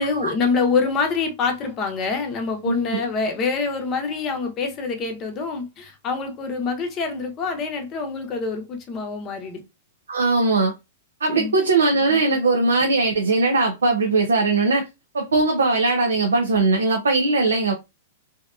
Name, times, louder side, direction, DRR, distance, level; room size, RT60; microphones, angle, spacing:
voice 1, 0.0-9.6 11.3-11.5 12.1-12.2, left 4 dB, 30° left, 0.7 m, -25 dB
voice 2, 2.6-3.0 10.1-10.7 11.2-14.9 15.1-17.7, right 3 dB, 90° right, 0.5 m, -20 dB
2.7 x 2.2 x 2.4 m
hypercardioid pair, 120°, 0 cm